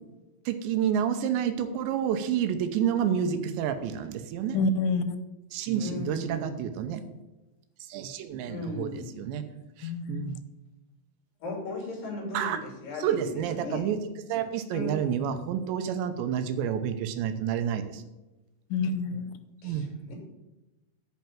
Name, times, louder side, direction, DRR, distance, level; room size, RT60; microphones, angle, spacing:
voice 1, 0.5-4.6 5.5-7.0 7.8-8.9 9.2-9.4 9.8-10.4 12.3-12.6 13.0-14.0 14.3-18.0 19.6-19.8, right 8 dB, 85° right, 9 dB, 3.0 m, -29 dB
voice 2, 4.5-5.0 9.8-10.3 18.7-19.3, left 3 dB, 90° left, 10 dB, 3.1 m, -27 dB
voice 3, 5.8-6.8 8.4-9.2 11.4-13.8 14.7-15.4 19.6-20.1, left 2 dB, 55° left, 0 dB, 4.1 m, -37 dB
9.3 x 5.8 x 7.3 m, 1.0 s
omnidirectional pair, 5.2 m